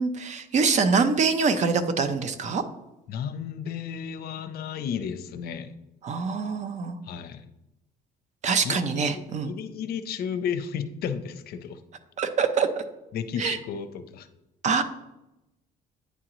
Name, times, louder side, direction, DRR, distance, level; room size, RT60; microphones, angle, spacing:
voice 1, 0.0-2.6 6.0-7.0 8.4-9.5 12.2-12.8 13.4-13.6 14.6-14.8, right 5 dB, 45° right, 10 dB, 0.6 m, -24 dB
voice 2, 3.1-5.7 7.0-7.5 8.6-11.8 13.1-14.3, left 7 dB, 65° left, 10 dB, 0.5 m, -33 dB
9.2 x 3.8 x 3.0 m, 0.92 s
cardioid pair, 110°, 17 cm